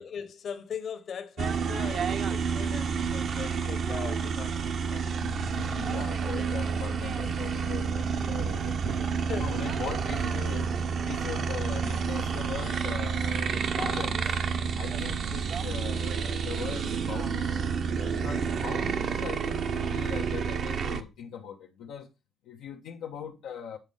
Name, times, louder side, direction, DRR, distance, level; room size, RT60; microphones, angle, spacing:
voice 1, 0.0-5.2 6.3-6.6 9.3-9.5, left 7 dB, 60° left, 1.2 m, -40 dB
sound 1, 1.4-21.0, right 6 dB, 60° right, 0.8 m, -29 dB
voice 2, 5.2-14.4 14.8-17.5 17.9-22.1 22.4-23.8, left 7 dB, 90° left, 0.8 m, -40 dB
7.9 x 4.1 x 5.5 m
cardioid pair, 90°, 0 cm